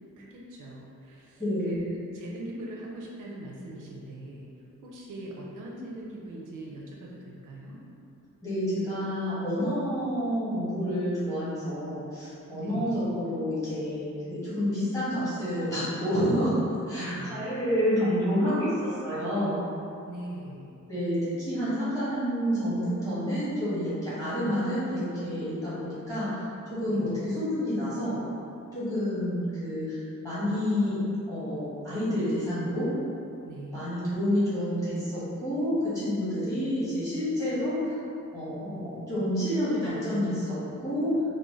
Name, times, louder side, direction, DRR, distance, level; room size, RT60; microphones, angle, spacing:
voice 1, 0.2-4.5 4.8-7.8 12.5-13.0 17.0-17.5 20.1-20.7 26.9-27.1 33.4-34.0, right 1 dB, 85° right, -3 dB, 0.6 m, -41 dB
voice 2, 1.4-1.8 8.4-16.6 16.9-19.6 20.9-28.2 28.7-32.9 33.7-37.9 38.3-40.6 40.8-41.1, equal, 10° left, -13 dB, 1.3 m, -29 dB
4.0 x 2.0 x 3.1 m, 2.6 s
wide cardioid pair, 180°, 31 cm